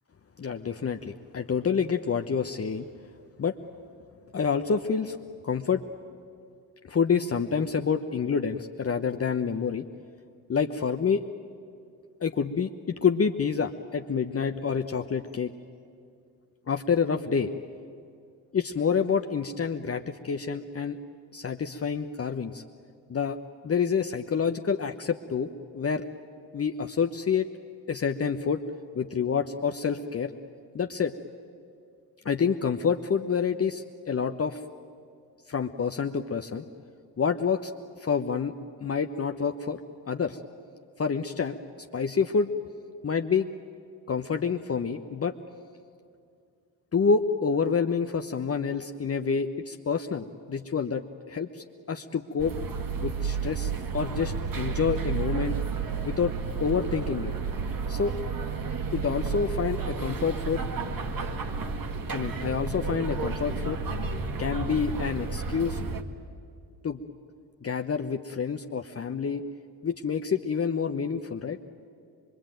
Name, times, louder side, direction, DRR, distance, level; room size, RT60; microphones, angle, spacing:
voice 1, 0.4-2.9 3.4-3.6 4.3-5.2 5.4-5.8 6.8-9.9 10.5-11.2 12.2-15.5 16.7-17.5 18.5-21.0 21.3-22.6 23.1-23.4 23.6-26.0 26.5-27.5 27.9-28.6 28.9-30.3 30.7-31.1 32.2-34.6 35.5-36.6 37.2-37.7 38.0-38.5 38.8-39.8 40.1-40.4 41.0-41.6 41.9-42.5 43.0-43.5 44.1-45.3 46.9-52.5 53.0-55.6 56.0-56.3 56.6-57.3 57.9-58.1 58.9-60.6 62.1-63.8 64.4-65.8 66.8-67.0 67.6-69.4 69.8-71.6, left 6 dB, 30° left, 5 dB, 1.0 m, -28 dB
sound 1, 52.4-66.0, right 5 dB, 45° right, 2.0 m, -31 dB
24.0 x 23.5 x 9.1 m, 2.4 s
hypercardioid pair, 55°, 47 cm